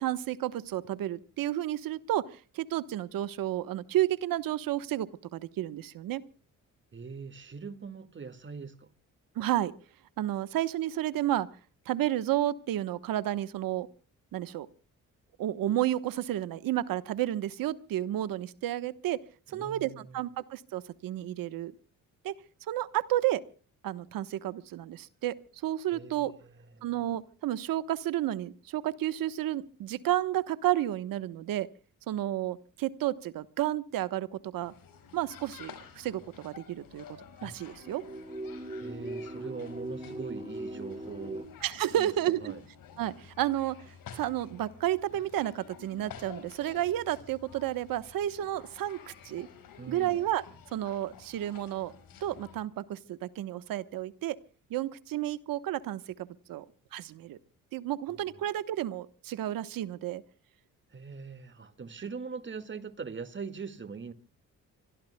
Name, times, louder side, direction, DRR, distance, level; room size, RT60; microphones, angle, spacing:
voice 1, 0.0-6.2 9.4-9.7 10.2-11.5 11.9-13.9 14.3-14.7 15.4-19.2 19.5-21.7 22.2-22.4 22.7-23.4 23.8-25.4 25.6-26.3 26.8-31.7 32.1-34.7 35.1-37.0 37.4-38.0 41.6-42.6 43.0-43.8 44.1-49.0 49.2-49.5 49.9-50.4 50.7-51.9 52.2-54.4 54.7-56.6 56.9-57.4 57.7-60.2, right 13 dB, 90° right, 1.1 m, -31 dB
voice 2, 6.9-8.9 19.5-20.3 25.9-26.9 38.8-41.5 42.0-42.7 49.8-50.2 58.1-58.3 60.9-64.1, right 5 dB, 35° right, 1.9 m, -42 dB
sound 1, 34.6-52.6, left 7 dB, 80° left, 5.5 m, -51 dB
sound 2, 37.8-41.5, right 1 dB, 20° right, 2.7 m, -39 dB
25.5 x 24.0 x 2.2 m
cardioid pair, 95°, 33 cm